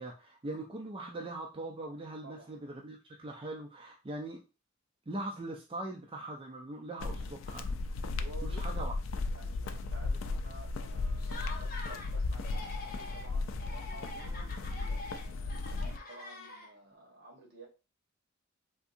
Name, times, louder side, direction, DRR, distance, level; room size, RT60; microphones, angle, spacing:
voice 1, 0.0-4.4 5.1-7.7 8.4-8.9, right 2 dB, 25° right, 0.5 m, -41 dB
voice 2, 2.2-2.7 8.1-8.8 9.3-17.7, right 2 dB, 60° right, 1.1 m, -53 dB
sound 1, 7.0-16.0, left 3 dB, 80° left, 0.4 m, -35 dB
Laughter, 11.2-12.1 12.4-13.3 13.6-16.9, left 3 dB, 50° left, 0.9 m, -45 dB
3.6 x 2.7 x 2.6 m
head